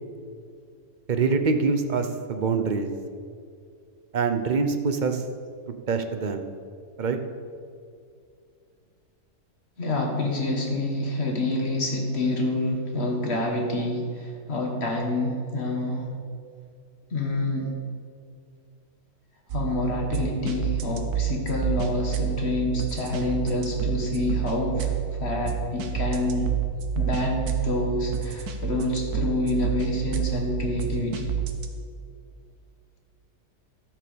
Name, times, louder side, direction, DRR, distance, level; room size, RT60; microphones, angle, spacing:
voice 1, 1.1-2.9 4.1-5.2 5.9-6.4 7.0-7.2, right 4 dB, 40° right, 7 dB, 0.7 m, -24 dB
voice 2, 9.8-16.1 17.1-17.8 19.5-24.9 25.2-26.5 27.0-31.4, left 2 dB, 45° left, 1 dB, 1.9 m, -27 dB
sound 1, 19.5-31.7, right 8 dB, 80° right, 1.5 m, -29 dB
13.5 x 6.1 x 7.0 m, 2.3 s
omnidirectional pair, 1.6 m